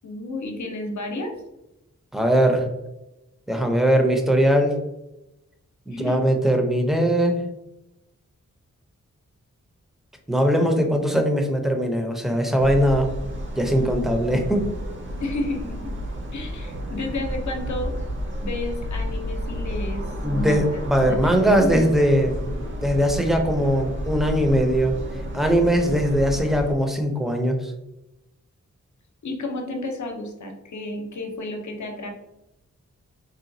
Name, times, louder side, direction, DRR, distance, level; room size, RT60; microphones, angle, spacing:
voice 1, 0.0-1.3 5.9-6.2 15.2-15.9 16.3-17.9 18.4-20.0 20.3-21.2 21.4-21.8 29.2-32.1, left 2 dB, 70° left, 3 dB, 0.7 m, -31 dB
voice 2, 2.1-2.6 3.5-4.8 5.9-7.4 10.3-13.1 13.5-14.7 20.2-22.4 22.8-25.0 25.3-27.7, equal, ahead, 3 dB, 0.6 m, -20 dB
sound 1, 12.6-26.7, equal, 40° right, 0.7 m, -31 dB
3.9 x 2.2 x 2.6 m, 0.92 s
wide cardioid pair, 75°, 31 cm